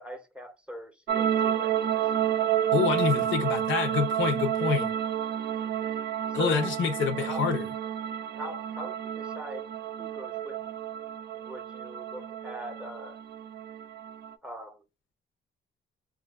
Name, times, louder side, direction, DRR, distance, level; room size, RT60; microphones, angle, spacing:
voice 1, 0.0-2.0 5.6-6.0 6.3-6.7 7.2-7.5 8.3-9.7 10.0-10.6 11.3-13.2 14.4-14.8, equal, 5° right, 0.6 m, -41 dB
sound 1, 1.1-14.3, right 10 dB, 55° right, 0.4 m, -30 dB
voice 2, 2.7-4.9 6.3-7.7, left 6 dB, 70° left, 0.7 m, -27 dB
3.0 x 2.4 x 2.2 m
cardioid pair, 90°, 20 cm